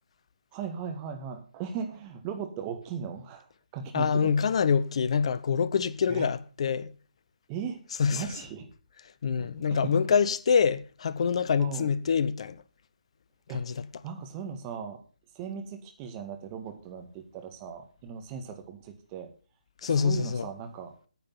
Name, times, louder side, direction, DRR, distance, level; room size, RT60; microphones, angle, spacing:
voice 1, 0.5-3.5 3.7-4.3 6.1-6.3 7.5-7.8 8.1-8.7 9.4-9.9 11.6-11.9 13.5-15.0 15.4-19.3 19.8-20.9, right 7 dB, 25° right, 2.1 m, -38 dB
voice 2, 3.9-6.9 8.0-8.2 9.2-12.6 13.5-13.8 19.8-20.5, left 6 dB, 50° left, 0.7 m, -25 dB
9.5 x 8.7 x 5.7 m
figure-of-eight pair, 145°, 4 cm